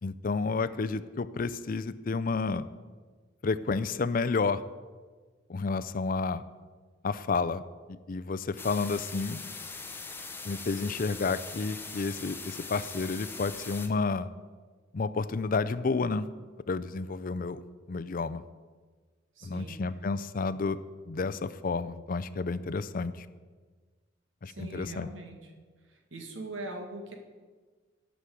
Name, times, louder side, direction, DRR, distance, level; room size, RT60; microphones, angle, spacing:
voice 1, 0.0-2.7 3.4-4.6 5.5-6.4 7.0-7.6 7.9-9.4 10.4-14.3 14.9-16.3 16.7-17.6 17.9-18.4 19.4-20.8 21.1-23.3 24.4-25.1, left 4 dB, 45° left, 13 dB, 0.5 m, -30 dB
sound 1, 8.6-13.9, left 4 dB, 10° left, 0.8 m, -41 dB
voice 2, 19.4-19.8 24.4-25.4 25.9-27.2, right 2 dB, 80° right, 3 dB, 1.9 m, -41 dB
11.5 x 6.2 x 8.4 m, 1.4 s
head